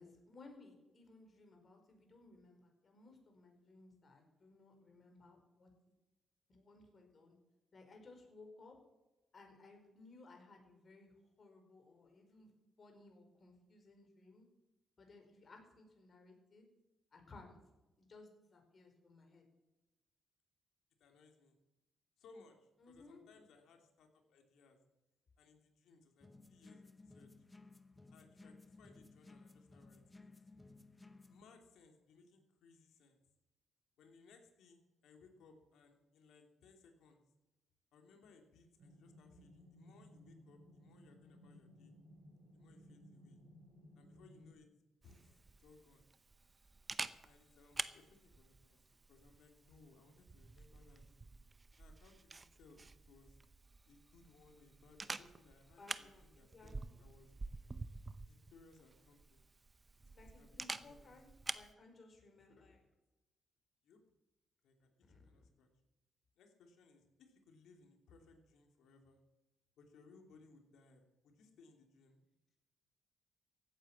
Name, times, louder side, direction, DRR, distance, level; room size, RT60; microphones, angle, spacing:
voice 1, 0.0-5.7 6.5-7.4 7.7-8.7 9.3-12.5 12.8-14.5 15.0-16.7 17.1-17.6 18.0-19.4 22.8-23.2 55.8-57.0 60.1-62.9 65.0-65.2, left 3 dB, 40° left, 3 dB, 4.7 m, -60 dB
voice 2, 21.0-21.6 22.2-24.8 25.4-27.3 28.1-30.3 31.3-33.2 34.0-37.2 37.9-41.9 42.5-43.4 43.9-44.7 45.0-46.0 47.2-48.8 49.1-51.3 51.8-53.4 53.9-56.7 57.0-57.3 58.2-59.5 60.1-61.2 63.8-64.0 64.6-65.7 66.4-69.2 69.8-72.2, left 4 dB, 75° left, 4 dB, 2.9 m, -65 dB
sound 1, 26.2-31.4, left 3 dB, 15° left, 1.2 m, -59 dB
sound 2, 38.8-44.5, equal, 60° right, 6.2 m, -60 dB
Camera, 45.0-61.7, right 3 dB, 25° right, 0.8 m, -49 dB
15.5 x 8.9 x 7.4 m, 1.0 s
cardioid pair, 90°, 0 cm